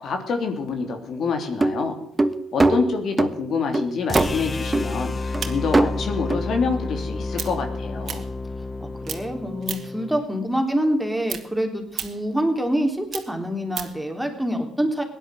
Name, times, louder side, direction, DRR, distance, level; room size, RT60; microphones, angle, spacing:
voice 1, 0.0-2.0 2.5-8.2, left 5 dB, 65° left, 5 dB, 3.0 m, -27 dB
sound 1, 1.4-3.4 3.7-4.4 4.7-4.9 5.3-5.4 5.7-5.9 6.3-6.4, right 2 dB, 20° right, 1.2 m, -21 dB
sound 2, 4.1-10.2, left 3 dB, 30° left, 0.7 m, -30 dB
sound 3, 4.1-8.8 9.0-10.1 10.4-14.1, right 8 dB, 60° right, 2.1 m, -36 dB
voice 2, 8.8-15.0, equal, 5° right, 3 dB, 3.6 m, -26 dB
17.0 x 11.0 x 7.8 m, 0.72 s
cardioid pair, 90°, 0 cm